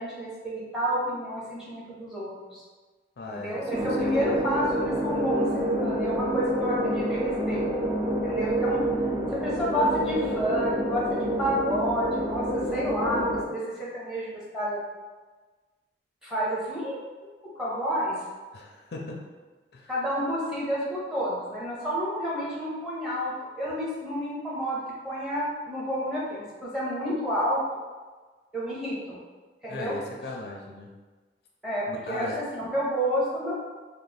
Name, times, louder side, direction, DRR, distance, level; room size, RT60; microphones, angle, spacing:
voice 1, 0.0-2.6 3.3-7.7 8.2-8.8 9.3-12.4 12.7-13.6 13.9-14.3 14.5-14.8 16.2-17.0 17.6-18.1 19.9-27.6 28.5-29.2 29.6-29.9 31.6-33.6, equal, 5° right, -7 dB, 0.8 m, -30 dB
voice 2, 3.2-4.5 18.5-19.2 19.7-19.9 29.7-30.9 31.9-32.4, left 2 dB, 65° left, -1 dB, 0.5 m, -38 dB
sound 1, 3.7-13.4, right 1 dB, 25° right, 0.4 m, -27 dB
3.1 x 2.1 x 4.0 m, 1.3 s
head